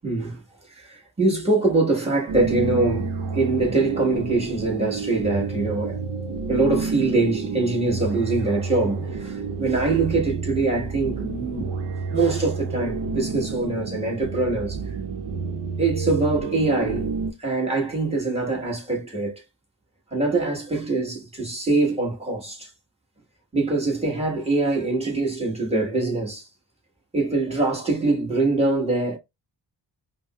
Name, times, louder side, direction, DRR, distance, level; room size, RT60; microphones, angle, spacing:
voice 1, 0.0-0.4 0.7-6.0 6.5-11.7 12.1-14.8 15.8-17.1 17.4-19.4 20.1-22.7 23.5-26.5 27.1-29.2, right 3 dB, 15° right, 1.4 m, -23 dB
sound 1, 2.3-17.3, right 4 dB, 70° right, 0.8 m, -30 dB
5.1 x 2.0 x 2.3 m
wide cardioid pair, 95°, 43 cm